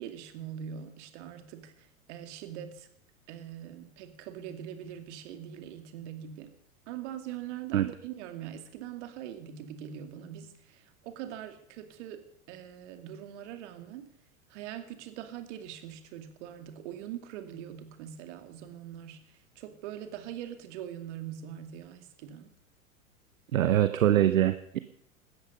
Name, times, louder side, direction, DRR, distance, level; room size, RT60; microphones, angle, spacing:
voice 1, 0.0-2.9 3.3-6.5 6.9-14.1 14.5-22.5, right 10 dB, 55° right, 8 dB, 2.4 m, -42 dB
voice 2, 23.5-24.8, right 12 dB, 70° right, 12 dB, 1.0 m, -23 dB
17.0 x 13.0 x 5.6 m, 0.67 s
figure-of-eight pair, 90°, 43 cm